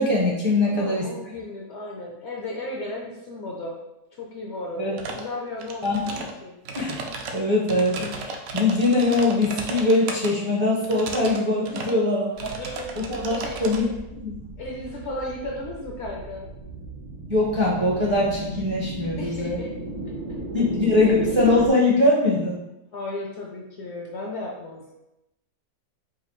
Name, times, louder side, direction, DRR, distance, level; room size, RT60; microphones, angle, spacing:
voice 1, 0.0-1.1 4.8-5.0 5.8-6.2 6.7-7.0 7.3-14.5 17.3-19.6 20.5-22.6, left 2 dB, 35° right, -4 dB, 0.5 m, -22 dB
voice 2, 0.6-3.8 4.1-6.6 11.7-12.0 12.6-13.6 14.6-16.5 19.2-19.7 22.9-24.9, left 1 dB, 60° left, -1 dB, 0.7 m, -35 dB
sound 1, 5.0-5.3 5.6-6.3 6.6-10.3 10.8-11.4 11.6-12.0 12.4-13.8, right 4 dB, 75° right, 1.0 m, -34 dB
sound 2, 12.4-21.7, right 2 dB, 90° right, 1.3 m, -36 dB
4.9 x 2.4 x 3.0 m, 0.91 s
omnidirectional pair, 1.6 m